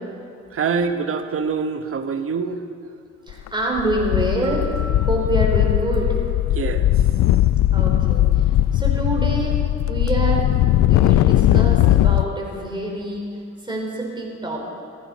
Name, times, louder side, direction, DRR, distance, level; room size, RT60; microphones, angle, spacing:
voice 1, 0.5-2.6 6.5-6.9, right 5 dB, 45° right, 8 dB, 1.1 m, -25 dB
sound 1, 3.3-3.5 3.8-12.2, left 13 dB, 65° left, 0.4 m, -18 dB
voice 2, 3.3-4.7 5.0-6.2 7.7-9.6 9.9-14.6, right 1 dB, 15° right, -1 dB, 4.2 m, -26 dB
Mallet percussion, 4.4-6.8, right 2 dB, 60° right, 5.0 m, -41 dB
16.0 x 14.5 x 5.2 m, 2.4 s
cardioid pair, 90°, 30 cm